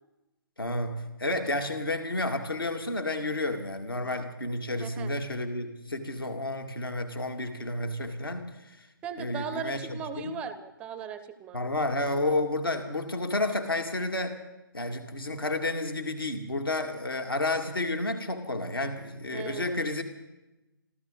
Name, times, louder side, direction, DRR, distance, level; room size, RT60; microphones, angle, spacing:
voice 1, 0.6-8.5 9.2-10.3 11.5-14.4 14.7-20.0, left 2 dB, 75° left, 5 dB, 2.2 m, -31 dB
voice 2, 4.8-5.1 9.0-11.6 19.3-19.8, right 5 dB, 10° right, 12 dB, 0.5 m, -38 dB
26.5 x 13.5 x 3.9 m, 0.99 s
figure-of-eight pair, 135°, 12 cm